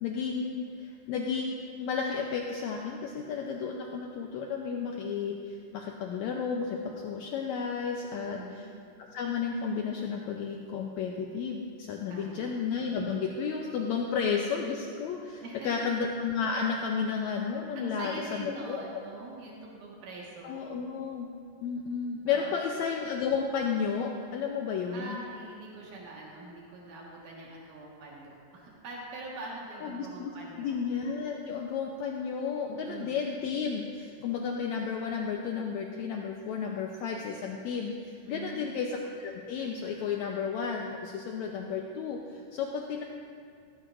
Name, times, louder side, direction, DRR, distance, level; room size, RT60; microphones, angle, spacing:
voice 1, 0.0-8.6 9.0-19.0 20.4-21.3 21.6-25.2 29.8-30.3 30.6-43.0, left 6 dB, 75° left, 1 dB, 1.8 m, -32 dB
voice 2, 8.1-8.7 12.1-12.5 15.4-15.9 17.7-20.6 22.3-22.6 24.9-30.8 32.8-33.2 38.2-38.7, right 2 dB, 80° right, -4 dB, 3.1 m, -43 dB
17.5 x 14.5 x 2.6 m, 2.3 s
omnidirectional pair, 3.6 m